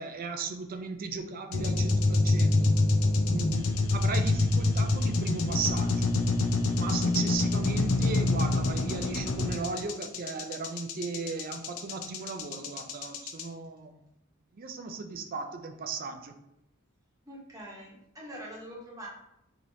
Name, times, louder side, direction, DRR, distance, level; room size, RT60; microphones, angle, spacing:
voice 1, 0.0-2.7 3.3-6.1 6.7-14.0 14.5-16.3, right 4 dB, 45° right, 6 dB, 0.4 m, -36 dB
sound 1, 1.5-13.4, left 2 dB, 85° left, 0.5 m, -26 dB
voice 2, 17.3-19.1, equal, 15° right, -4 dB, 1.1 m, -44 dB
4.9 x 2.9 x 2.6 m, 0.80 s
head